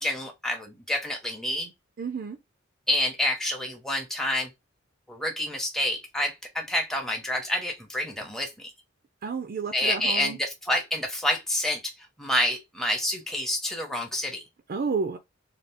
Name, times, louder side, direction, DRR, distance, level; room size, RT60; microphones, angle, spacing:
voice 1, 0.0-1.7 2.9-4.5 5.1-8.7 9.7-11.9 12.2-14.4, left 1 dB, ahead, 0.7 m, -28 dB
voice 2, 2.0-2.4 9.2-10.4 14.7-15.2, right 5 dB, 50° right, 0.4 m, -30 dB
2.8 x 2.3 x 3.4 m
head